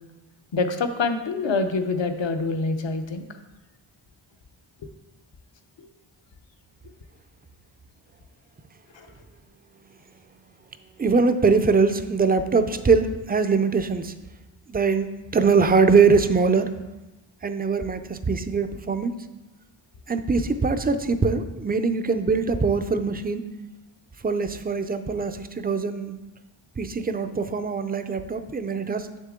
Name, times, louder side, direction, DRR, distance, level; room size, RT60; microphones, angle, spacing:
voice 1, 0.5-3.2 4.8-4.9 5.8-5.9 8.9-9.1, left 3 dB, 60° left, 7 dB, 0.8 m, -26 dB
voice 2, 11.0-14.1 14.7-16.7 17.4-19.1 20.1-23.4 24.2-26.2 26.8-29.1, right 4 dB, 20° right, 9 dB, 0.4 m, -22 dB
7.0 x 6.6 x 3.7 m, 1.1 s
wide cardioid pair, 85°, 49 cm